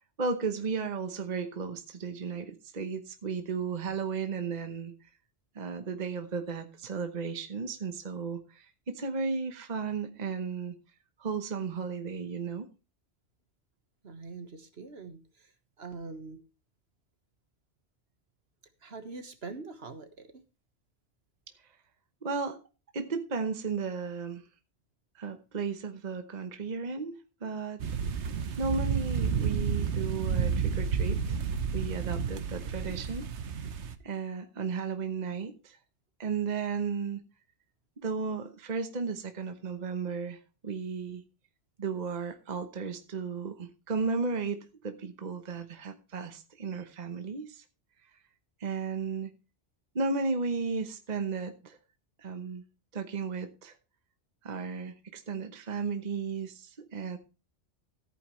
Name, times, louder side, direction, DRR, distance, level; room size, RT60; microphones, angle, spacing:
voice 1, 0.2-4.9 5.5-10.8 11.2-12.7 22.2-22.6 22.9-24.4 25.1-27.8 28.1-31.4 31.7-33.3 34.0-35.8 36.2-37.2 38.0-41.2 41.8-47.6 48.6-49.3 49.9-51.8 52.2-52.6 52.9-53.7 54.4-57.2, right 5 dB, 40° right, 7 dB, 1.1 m, -34 dB
voice 2, 14.0-15.5 15.8-16.4 18.8-20.4, right 3 dB, 65° right, 8 dB, 1.6 m, -43 dB
sound 1, 27.8-33.9, right 6 dB, 80° right, 1.2 m, -31 dB
14.0 x 9.1 x 3.2 m, 0.32 s
omnidirectional pair, 1.1 m